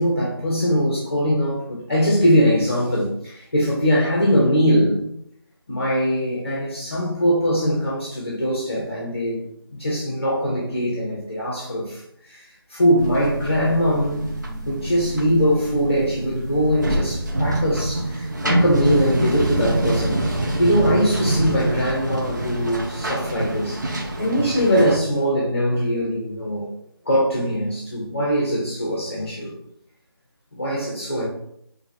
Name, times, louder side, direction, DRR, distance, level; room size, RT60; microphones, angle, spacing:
voice 1, 0.0-5.1 5.7-9.4 9.7-14.3 14.6-20.2 20.6-23.9 24.2-26.7 27.0-29.5 30.5-31.3, equal, 30° left, -4 dB, 1.0 m, -21 dB
sound 1, 13.0-25.0, right 1 dB, 45° right, 0.7 m, -25 dB
5.0 x 2.7 x 3.1 m, 0.71 s
figure-of-eight pair, 180°, 13 cm